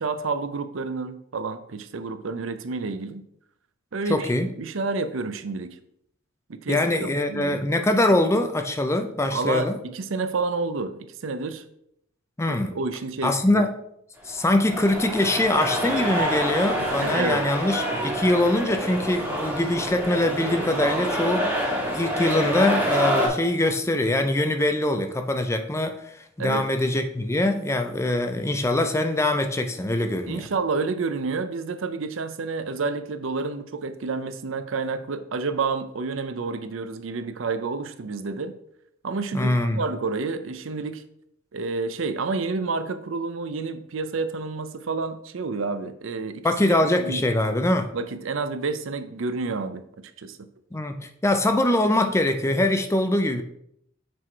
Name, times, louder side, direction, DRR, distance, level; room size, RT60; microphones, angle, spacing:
voice 1, 0.0-3.2 3.9-4.3 4.6-5.8 6.5-7.6 9.3-11.6 12.5-13.7 16.8-17.4 26.4-26.6 30.3-38.5 39.0-41.0 41.5-46.5 46.9-47.2 47.9-49.8 50.2-50.4, right 4 dB, 70° right, 0.6 m, -29 dB
voice 2, 4.1-4.5 6.7-9.8 12.4-12.7 13.2-13.8 14.3-26.0 26.4-30.5 39.3-39.8 46.4-47.9 50.7-53.4, left 1 dB, 15° left, 0.5 m, -23 dB
sound 1, 14.3-23.3, equal, 10° right, 1.6 m, -27 dB
6.1 x 4.7 x 4.5 m
head